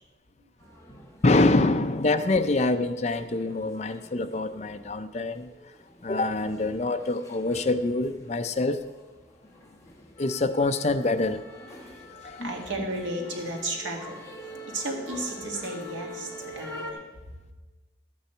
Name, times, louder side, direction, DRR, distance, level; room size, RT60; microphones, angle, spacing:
sound 1, 0.6-16.9, left 1 dB, 15° left, 1.1 m, -45 dB
voice 1, 1.2-5.5 6.0-8.8 10.2-11.4 11.7-11.8 12.2-12.5, left 2 dB, 35° left, 9 dB, 0.5 m, -25 dB
voice 2, 12.1-14.2 14.7-17.0, right 1 dB, 90° right, 0 dB, 2.0 m, -33 dB
12.5 x 8.6 x 4.4 m, 1.2 s
head